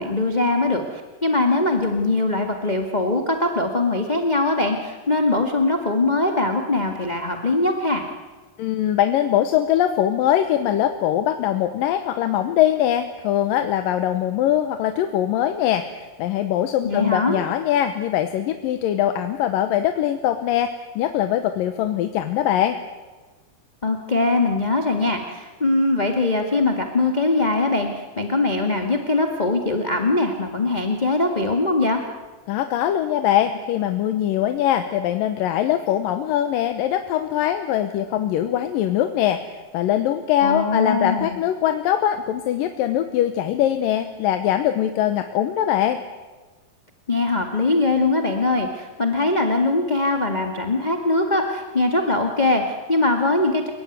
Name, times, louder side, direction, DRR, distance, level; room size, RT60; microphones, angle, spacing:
voice 1, 0.0-8.0 16.8-17.4 23.8-32.0 40.4-41.4 47.1-53.7, left 2 dB, 20° left, 4 dB, 1.2 m, -21 dB
voice 2, 8.6-22.8 32.5-46.0, left 11 dB, 85° left, 8 dB, 2.7 m, -22 dB
29.5 x 18.0 x 9.5 m, 1.3 s
omnidirectional pair, 3.9 m